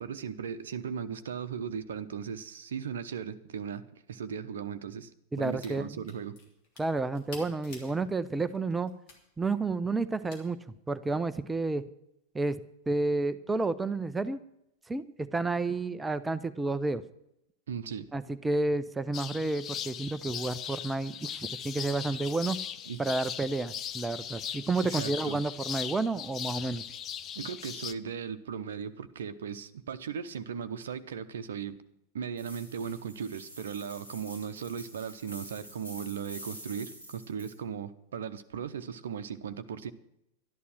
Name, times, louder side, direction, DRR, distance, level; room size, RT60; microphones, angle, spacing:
voice 1, 0.0-5.1 5.4-6.4 17.7-18.1 22.1-22.3 22.9-23.0 24.8-25.4 27.3-31.8 32.1-39.9, right 7 dB, 65° right, 10 dB, 0.8 m, -37 dB
voice 2, 5.3-6.0 6.8-8.9 9.4-10.6 10.9-11.8 12.3-12.6 12.9-14.4 14.9-17.0 18.1-22.6 23.0-26.8, right 3 dB, 10° right, 12 dB, 0.6 m, -30 dB
sound 1, 5.4-5.8 6.0-8.0 8.5-9.2 10.3-10.4, left 3 dB, 45° left, 3.0 m, -49 dB
sound 2, 19.1-27.9, left 9 dB, 30° left, 0.7 m, -39 dB
sound 3, 32.4-37.5, equal, 75° left, 7.1 m, -47 dB
12.5 x 11.0 x 6.2 m, 0.81 s
figure-of-eight pair, 90°, 0 cm